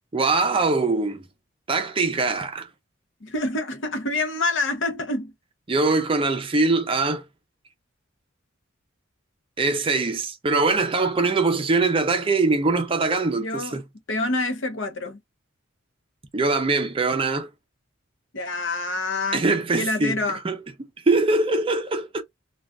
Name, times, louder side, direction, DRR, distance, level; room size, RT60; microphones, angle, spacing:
voice 1, 0.1-1.2 1.7-2.7 5.7-7.2 9.6-13.8 16.3-17.5 19.3-20.6 21.1-22.2, right 3 dB, 25° right, 0.5 m, -22 dB
voice 2, 3.2-5.3 13.4-13.8 14.1-15.2 18.3-19.4 19.8-20.4, left 2 dB, 65° left, 0.8 m, -27 dB
2.5 x 2.3 x 3.4 m
head